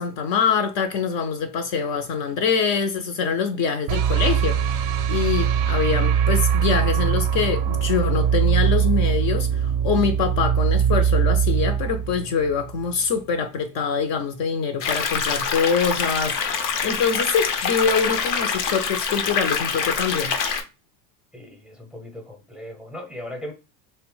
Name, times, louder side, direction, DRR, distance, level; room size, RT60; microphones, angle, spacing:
voice 1, 0.0-20.3, left 6 dB, 50° left, 0.5 m, -24 dB
sound 1, 3.9-13.0, right 8 dB, 50° right, 0.4 m, -21 dB
sound 2, 14.8-20.6, left 6 dB, 90° left, 0.7 m, -25 dB
voice 2, 21.3-23.5, left 1 dB, ahead, 0.6 m, -37 dB
2.7 x 2.0 x 3.1 m
supercardioid pair, 100°, 49 cm